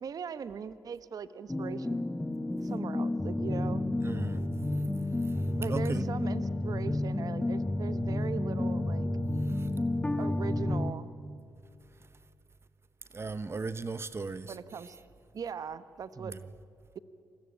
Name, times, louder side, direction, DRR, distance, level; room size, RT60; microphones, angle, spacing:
voice 1, 0.0-2.0 2.6-3.8 5.6-9.1 10.2-11.1 14.5-15.0 15.3-16.3, right 6 dB, 65° right, 1.1 m, -40 dB
sound 1, 1.5-10.9, left 1 dB, 15° left, 1.5 m, -31 dB
voice 2, 4.0-4.4 5.3-5.4 5.7-6.0 9.5-9.7 13.1-14.6 16.2-16.4, right 4 dB, 40° right, 1.0 m, -37 dB
26.5 x 21.0 x 8.9 m
supercardioid pair, 55°, 7 cm